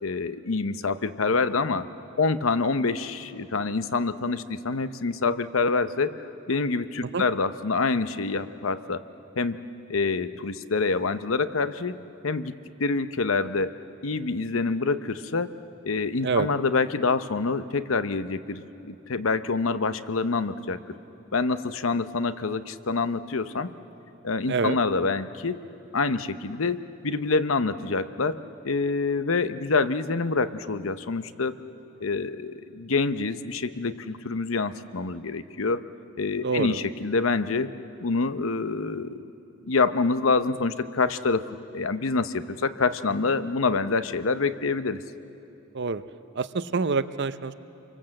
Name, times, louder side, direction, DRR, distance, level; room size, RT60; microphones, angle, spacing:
voice 1, 0.0-1.9 2.2-6.1 6.5-9.0 9.4-9.6 9.9-12.0 12.2-12.5 12.8-13.7 14.0-15.5 15.8-20.8 21.3-23.7 24.2-25.6 25.9-28.4 28.6-31.6 32.0-35.8 36.2-37.7 38.0-39.3 39.6-45.0, left 4 dB, 80° left, 12 dB, 0.8 m, -26 dB
voice 2, 24.5-24.8 36.4-36.8 45.7-46.0 46.3-47.5, right 4 dB, 55° right, 13 dB, 0.7 m, -26 dB
27.0 x 24.0 x 7.7 m, 2.9 s
head